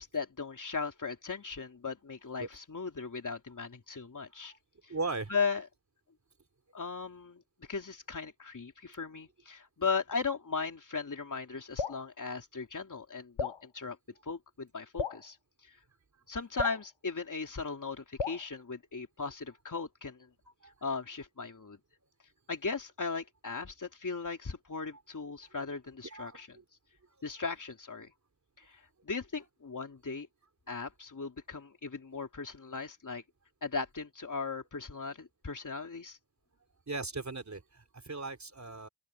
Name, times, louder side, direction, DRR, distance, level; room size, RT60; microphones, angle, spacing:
voice 1, 0.0-4.5 4.8-4.9 5.3-5.7 6.7-14.0 14.2-15.4 15.6-15.8 16.3-20.3 20.8-21.8 22.5-26.6 27.2-28.1 28.6-30.3 30.7-33.2 33.6-36.2, left 4 dB, 40° left, 3.3 m, -37 dB
voice 2, 4.9-5.3 20.6-20.7 26.0-26.4 36.9-38.9, right 3 dB, 35° right, 3.6 m, -38 dB
Drip, 11.8-12.0 13.4-13.6 15.0-15.2 16.6-16.8 18.2-18.5, left 5 dB, 90° left, 3.0 m, -34 dB
open air
wide cardioid pair, 140°, 49 cm